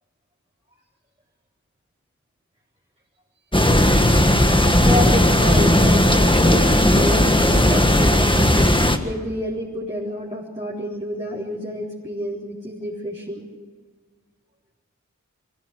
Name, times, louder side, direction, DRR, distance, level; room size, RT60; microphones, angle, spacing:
sound 1, 3.5-9.0, left 1 dB, 15° left, 1.6 m, -16 dB
voice 1, 4.8-13.5, equal, 25° right, -6 dB, 4.0 m, -29 dB
23.0 x 16.5 x 8.3 m, 1.5 s
wide cardioid pair, 45°, 30 cm